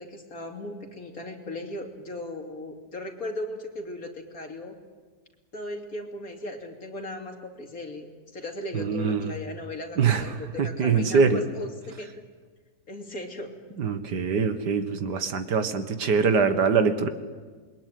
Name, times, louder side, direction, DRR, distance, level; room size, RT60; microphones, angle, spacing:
voice 1, 0.0-4.8 5.5-12.1 12.9-13.5, left 1 dB, 55° left, 2 dB, 3.4 m, -37 dB
voice 2, 8.7-9.2 10.0-10.2 10.6-11.4 13.8-17.1, right 5 dB, 80° right, 9 dB, 2.2 m, -23 dB
27.5 x 22.5 x 9.4 m, 1.4 s
omnidirectional pair, 1.8 m